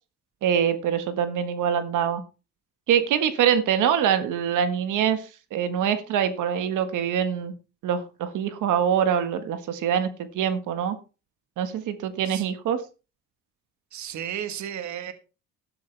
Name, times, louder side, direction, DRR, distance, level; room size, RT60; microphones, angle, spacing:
voice 1, 0.4-2.2 2.9-7.5 7.8-10.1 10.3-11.0 11.6-12.8, right 8 dB, 85° right, 9 dB, 1.6 m, -24 dB
voice 2, 13.9-15.1, right 10 dB, 70° right, 9 dB, 1.5 m, -33 dB
12.5 x 11.5 x 3.4 m, 0.32 s
cardioid pair, 90°, 30 cm